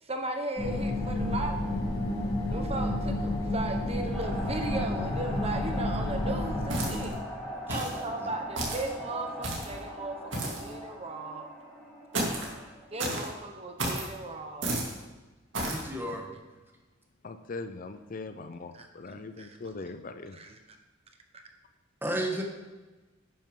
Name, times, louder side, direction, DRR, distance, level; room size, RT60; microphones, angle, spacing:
voice 1, 0.0-1.8 2.5-7.1 7.6-11.5 12.9-14.7 18.7-19.6 20.3-20.8, right 2 dB, 30° right, 4 dB, 1.2 m, -37 dB
sound 1, 0.6-7.1, left 1 dB, 25° left, 3.5 m, -31 dB
sound 2, 4.1-13.2, equal, 5° left, 2.2 m, -41 dB
sound 3, 6.7-7.2 7.7-8.0 8.6-8.9 9.4-9.8 10.3-10.7 12.1-12.5 13.0-13.3 13.8-14.1 14.6-14.9 15.5-15.8, right 2 dB, 75° right, 2.5 m, -32 dB
voice 2, 12.2-12.7 15.7-16.3 22.0-22.4, right 1 dB, 10° right, 1 dB, 1.5 m, -34 dB
voice 3, 17.2-20.4, left 3 dB, 45° left, 9 dB, 0.5 m, -40 dB
11.0 x 9.4 x 3.8 m, 1.2 s
head